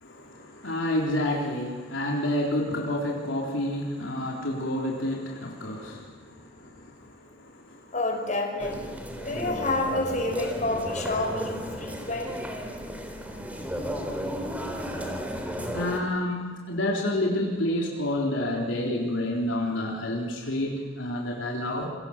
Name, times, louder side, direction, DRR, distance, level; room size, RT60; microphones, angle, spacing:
voice 1, 0.0-6.9 7.7-7.8 15.6-21.9, left 1 dB, 70° left, -1 dB, 3.9 m, -29 dB
voice 2, 7.9-12.3, left 2 dB, 40° left, 2 dB, 5.7 m, -29 dB
sound 1, 8.6-16.0, equal, 10° right, 3.6 m, -34 dB
28.0 x 25.0 x 7.4 m, 1.5 s
head